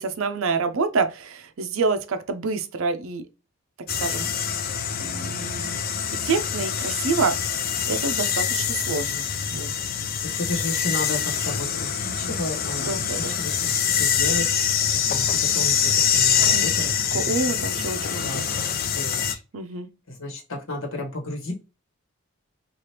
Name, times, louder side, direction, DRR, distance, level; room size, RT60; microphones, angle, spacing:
voice 1, 0.0-3.3 3.8-4.3 5.0-5.8 6.1-7.4 7.9-9.7 12.2-12.3 12.8-13.4 16.5-16.8 17.1-18.5 19.5-19.9, right 4 dB, 70° right, 0.5 m, -27 dB
sound 1, 3.9-19.3, left 7 dB, 40° left, 0.3 m, -25 dB
voice 2, 10.2-14.4 14.9-15.2 15.5-17.4 17.7-17.8 18.2-19.4 20.1-21.5, left 2 dB, 65° left, 1.2 m, -33 dB
3.3 x 2.4 x 2.8 m
head